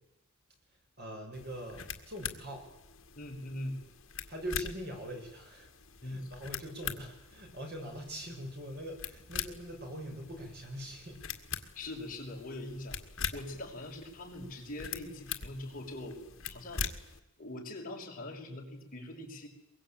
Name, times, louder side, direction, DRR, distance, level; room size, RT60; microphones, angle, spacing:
voice 1, 1.0-2.7 4.3-5.7 6.0-11.2, equal, 50° right, 2 dB, 7.3 m, -42 dB
sound 1, 1.3-17.2, left 7 dB, 65° left, 1.9 m, -43 dB
voice 2, 3.1-3.8 6.0-6.3 11.7-13.0 13.3-16.9 17.4-19.5, left 1 dB, 40° left, -1 dB, 5.9 m, -42 dB
23.5 x 22.5 x 9.1 m, 0.91 s
head